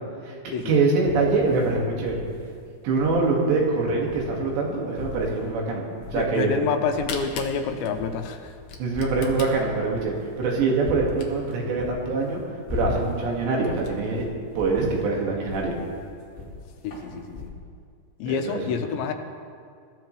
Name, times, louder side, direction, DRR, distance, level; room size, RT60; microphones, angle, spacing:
voice 1, 0.7-2.3 2.8-6.5 8.8-12.4 12.7-14.3 14.6-15.7 18.3-18.6, right 3 dB, 75° right, -2 dB, 4.2 m, -24 dB
sound 1, 1.0-4.6 4.9-6.6 6.8-17.5, left 4 dB, 20° left, 4.5 m, -39 dB
voice 2, 6.1-8.5 16.8-17.5 18.2-19.1, left 6 dB, 90° left, 5 dB, 3.2 m, -28 dB
Camera, 6.7-11.6 12.2-12.3 12.5-12.6 13.1-13.2 13.5-13.9, left 6 dB, 65° left, 1.9 m, -39 dB
22.5 x 13.0 x 3.3 m, 2.2 s
omnidirectional pair, 5.1 m